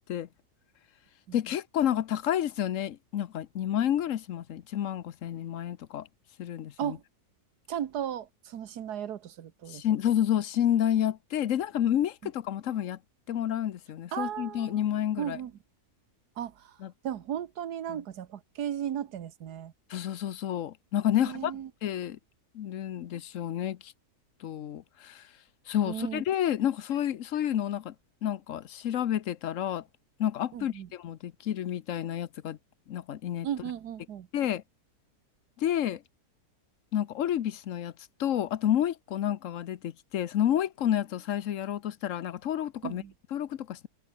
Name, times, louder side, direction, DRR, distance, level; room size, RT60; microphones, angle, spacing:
voice 1, 1.3-6.1 6.4-7.0 9.7-13.0 13.3-15.4 16.8-16.9 17.9-18.0 19.9-22.2 22.5-23.9 24.4-25.3 25.7-27.9 28.2-29.8 30.2-32.6 32.9-33.5 34.3-34.6 35.6-36.0 36.9-37.9 38.2-43.0 43.3-43.9, left 10 dB, 60° left, 1.1 m, -30 dB
voice 2, 7.7-9.8 14.1-14.8 15.2-15.5 16.4-16.7 17.0-19.7 21.1-21.7 25.9-26.2 30.5-30.9 33.4-34.3 42.8-43.1, right 10 dB, 85° right, 1.6 m, -35 dB
omnidirectional pair, 1.7 m